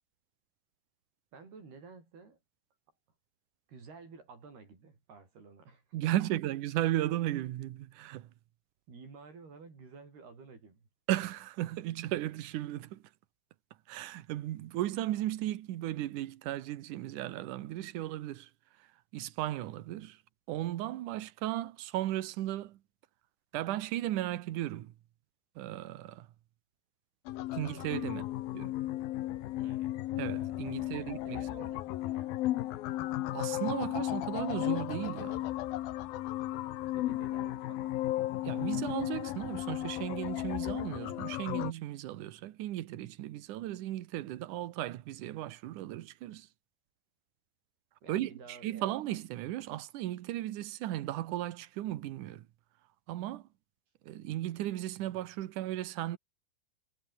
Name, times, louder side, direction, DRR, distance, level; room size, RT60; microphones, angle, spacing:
voice 1, 1.3-2.4 3.7-6.3 8.9-10.9 28.0-28.4 29.6-30.0 30.8-32.5 37.0-38.3 48.0-48.9, right 4 dB, 85° right, 9.0 m, -52 dB
voice 2, 5.9-8.3 11.1-13.0 13.9-18.5 18.8-18.9 19.1-20.2 20.5-22.8 23.5-24.9 25.6-26.3 27.5-28.2 28.5-28.7 30.2-31.5 33.3-35.5 38.4-46.5 48.1-52.5 53.1-53.5 54.0-56.2, right 14 dB, 65° right, 2.3 m, -35 dB
sound 1, 27.3-41.7, left 15 dB, 75° left, 2.8 m, -35 dB
omnidirectional pair, 4.4 m